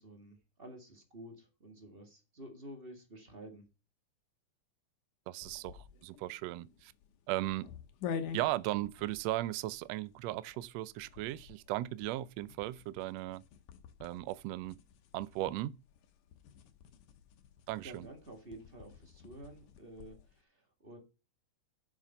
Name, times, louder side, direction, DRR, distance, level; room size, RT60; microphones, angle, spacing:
voice 1, 0.0-3.7 17.8-21.0, right 1 dB, 25° right, 1.6 m, -51 dB
voice 2, 5.3-6.9 7.3-7.7 8.3-13.4 14.0-14.8 15.1-15.7 17.7-18.1, right 16 dB, 80° right, 1.5 m, -37 dB
sound 1, 5.4-20.3, left 7 dB, 85° left, 2.5 m, -48 dB
7.6 x 7.3 x 5.7 m
omnidirectional pair, 3.5 m